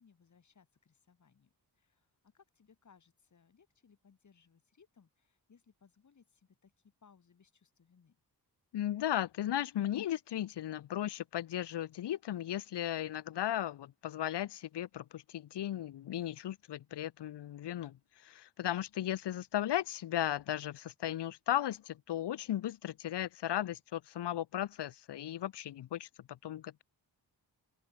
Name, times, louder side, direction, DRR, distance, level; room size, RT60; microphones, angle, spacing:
voice 1, 0.0-8.2, left 6 dB, 45° left, 7.1 m, -66 dB
voice 2, 8.7-18.0 18.2-26.8, left 12 dB, 85° left, 0.9 m, -36 dB
open air
wide cardioid pair, 180°, 40 cm